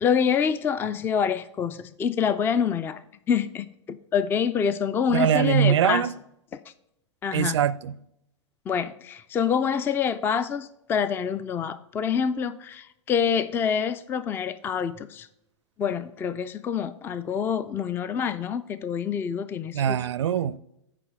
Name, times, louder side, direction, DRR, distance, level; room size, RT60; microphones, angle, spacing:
voice 1, 0.0-3.0 3.3-6.1 6.5-6.6 7.2-7.5 8.7-15.3 15.8-20.0, left 7 dB, 15° left, 0.3 m, -26 dB
voice 2, 5.1-6.1 7.3-7.9 19.7-20.6, right 9 dB, 65° right, 0.4 m, -22 dB
9.9 x 5.0 x 4.7 m
figure-of-eight pair, 100°, 16 cm